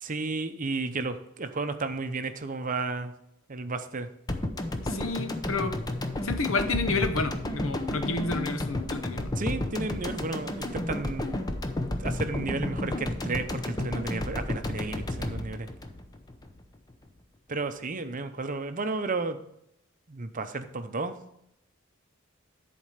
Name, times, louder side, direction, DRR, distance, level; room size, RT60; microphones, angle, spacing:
voice 1, 0.0-3.1 3.5-4.1 9.4-11.3 12.0-15.7 17.5-19.4 20.1-21.2, right 3 dB, 40° right, 9 dB, 0.7 m, -32 dB
sound 1, 4.3-16.6 16.9-17.0, left 1 dB, 20° left, 0.7 m, -32 dB
voice 2, 4.8-5.8 6.2-9.3, left 3 dB, 85° left, 8 dB, 1.0 m, -30 dB
10.5 x 4.4 x 6.6 m, 0.78 s
head